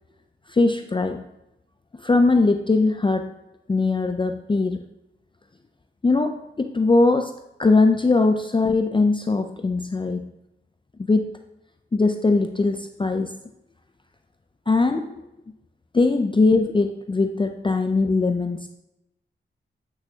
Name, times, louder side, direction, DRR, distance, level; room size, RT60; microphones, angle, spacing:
voice 1, 0.5-1.2 2.0-3.3 3.7-4.8 6.0-7.3 7.6-10.3 11.0-11.3 11.9-13.3 14.7-15.1 15.9-18.7, left 3 dB, 25° left, 6 dB, 0.5 m, -20 dB
8.3 x 6.2 x 2.8 m, 0.89 s
cardioid pair, 60°, 20 cm